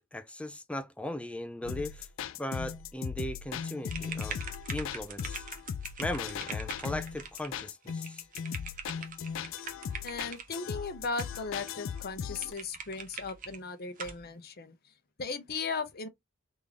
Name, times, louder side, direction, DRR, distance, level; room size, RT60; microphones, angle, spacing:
voice 1, 0.0-2.1 2.4-4.4 4.7-5.4 6.0-8.2, left 1 dB, 5° left, 0.4 m, -38 dB
sound 1, 1.6-12.5, left 7 dB, 70° left, 0.4 m, -38 dB
sound 2, 3.9-10.6 11.2-11.7 12.0-12.1 12.4-13.6 14.0-14.2, right 6 dB, 40° right, 0.7 m, -43 dB
voice 2, 10.0-14.9 15.2-16.1, left 4 dB, 50° left, 0.7 m, -37 dB
3.5 x 2.6 x 3.2 m
head